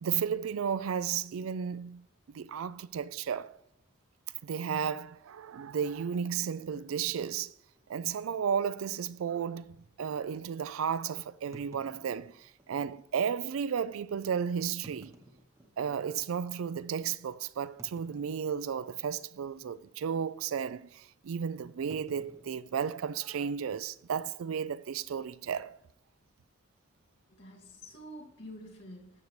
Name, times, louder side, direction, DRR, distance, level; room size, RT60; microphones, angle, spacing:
voice 1, 0.0-2.1 2.3-3.5 4.4-7.5 7.9-15.1 15.8-25.7, right 7 dB, 85° right, 0.4 m, -33 dB
sound 1, 6.8-7.0 7.7-7.8 8.1-8.2 8.8-8.9 11.5-12.7 13.5-13.6 14.7-16.1 16.6-16.7 17.8-18.9 19.2-19.5 19.8-20.1 21.9-23.5, equal, 15° right, 0.8 m, -56 dB
voice 2, 27.3-29.2, equal, 60° left, 2.3 m, -48 dB
12.5 x 6.6 x 3.2 m
head